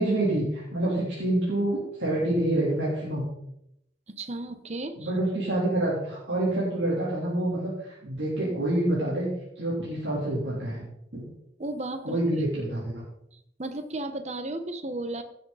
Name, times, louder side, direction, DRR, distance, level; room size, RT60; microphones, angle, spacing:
voice 1, 0.0-3.3 5.0-9.3 9.6-10.9 11.1-11.3 12.0-13.0, right 1 dB, 80° right, -6 dB, 3.5 m, -27 dB
voice 2, 4.1-5.1 11.6-12.4 13.6-15.2, right 2 dB, 35° right, 8 dB, 1.0 m, -34 dB
16.5 x 8.0 x 4.1 m, 0.80 s
head